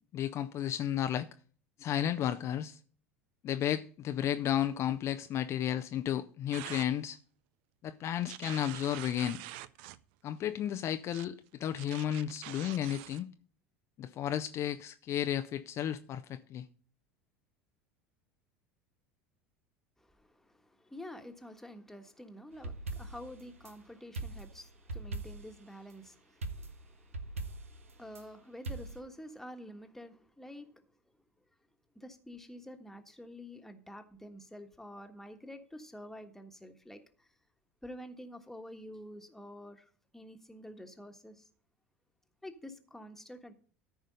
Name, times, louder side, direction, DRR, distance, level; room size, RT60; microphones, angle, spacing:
voice 1, 0.1-1.3 1.8-2.8 3.4-7.2 7.8-9.4 10.2-13.3 14.0-16.7, left 10 dB, 40° left, 0.5 m, -33 dB
sound 1, 6.5-6.9 8.2-10.0 11.1-11.3 11.8-13.2, right 15 dB, 60° right, 0.5 m, -45 dB
voice 2, 20.0-30.7 31.9-37.3 37.8-39.8 40.1-41.5 42.4-43.5, left 1 dB, 5° left, 1.4 m, -49 dB
sound 2, 22.5-23.7 24.1-25.6 26.4-28.2 28.6-29.0, right 2 dB, 85° right, 0.9 m, -41 dB
13.5 x 5.0 x 5.3 m
figure-of-eight pair, 75°, 7 cm